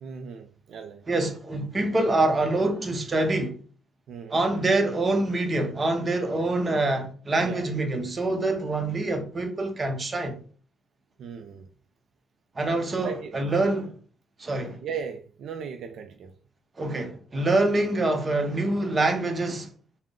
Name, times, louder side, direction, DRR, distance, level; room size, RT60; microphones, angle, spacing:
voice 1, 0.0-1.0 4.1-4.4 7.4-7.7 11.2-11.7 13.0-13.4 14.8-16.3, right 6 dB, 70° right, 0.4 m, -37 dB
voice 2, 1.1-3.6 4.3-10.4 12.5-13.9 14.4-14.8 16.8-19.7, right 2 dB, 30° right, 0.8 m, -25 dB
3.5 x 2.1 x 3.6 m
cardioid pair, 90°, 0 cm